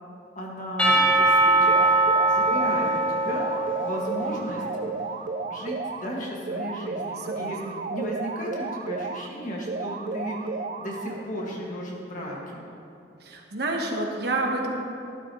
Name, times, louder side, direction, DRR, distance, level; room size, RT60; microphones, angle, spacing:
voice 1, 0.4-1.8 2.3-3.5 3.8-4.6 5.5-7.6 7.9-10.4 10.8-12.6, equal, 40° left, -3 dB, 1.8 m, -34 dB
Percussion / Church bell, 0.8-4.8, right 2 dB, 5° left, 1.8 m, -22 dB
sound 1, 1.7-2.9 3.3-6.1 6.5-9.3 9.7-11.2, right 4 dB, 40° right, 0.4 m, -33 dB
voice 2, 7.2-7.5 13.2-14.7, right 2 dB, 60° right, 1 dB, 1.2 m, -29 dB
12.5 x 12.0 x 3.1 m, 2.6 s
head